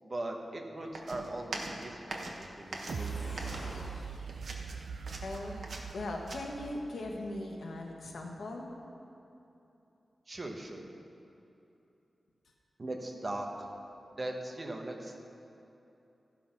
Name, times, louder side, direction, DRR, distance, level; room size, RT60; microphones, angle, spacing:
voice 1, 0.0-3.4 10.3-10.9 12.8-13.7 14.2-15.2, right 1 dB, 30° right, 1 dB, 1.0 m, -40 dB
sound 1, 0.9-4.0 4.3-6.4, right 2 dB, 65° right, 1.0 m, -42 dB
Waves surf, 2.6-4.1, left 1 dB, 40° left, 1.7 m, -45 dB
sound 2, 2.9-7.8 8.2-8.3, right 6 dB, 85° right, 0.4 m, -42 dB
voice 2, 5.2-5.7 5.9-8.7, left 2 dB, 75° left, 1 dB, 1.2 m, -39 dB
14.0 x 5.6 x 5.8 m, 2.9 s
wide cardioid pair, 160°, 0 cm